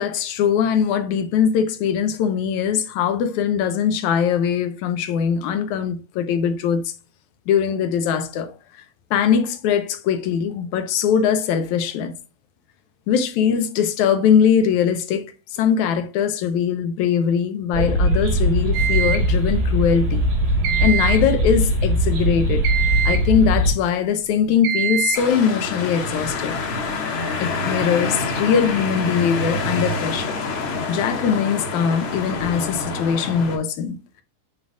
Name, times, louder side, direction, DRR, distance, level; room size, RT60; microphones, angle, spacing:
voice 1, 0.0-6.9 7.5-8.5 9.1-12.2 13.1-20.3 20.8-22.7 23.1-26.6 27.4-30.4 30.9-34.2, left 7 dB, 75° left, 2.1 m, -21 dB
sound 1, 17.7-23.7, equal, 80° right, 4.5 m, -20 dB
sound 2, 18.7-19.3 20.6-21.3 22.6-23.3 24.6-25.3, right 8 dB, 65° right, 2.4 m, -24 dB
sound 3, 25.1-33.6, left 3 dB, 50° left, 1.9 m, -27 dB
10.5 x 3.9 x 2.3 m
omnidirectional pair, 3.6 m